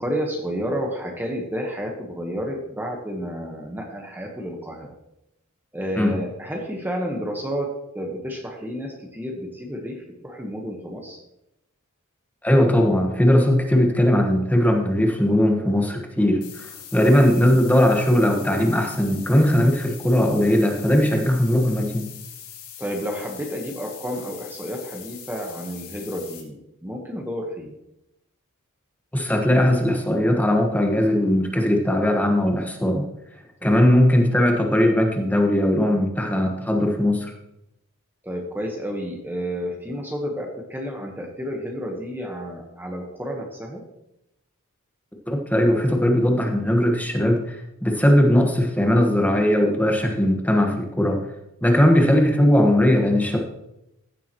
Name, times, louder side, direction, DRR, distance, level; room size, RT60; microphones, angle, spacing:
voice 1, 0.0-4.9 5.7-11.2 17.0-17.2 22.8-27.7 33.6-33.9 38.2-43.8, equal, 10° right, 1 dB, 1.2 m, -31 dB
voice 2, 12.4-16.7 16.9-22.1 29.1-33.0 33.6-37.3 45.3-47.5 47.8-51.2 51.6-53.4, left 1 dB, 5° left, 2 dB, 1.3 m, -19 dB
sound 1, 16.4-26.4, left 9 dB, 90° left, 2.7 m, -42 dB
15.5 x 7.2 x 3.0 m, 0.85 s
head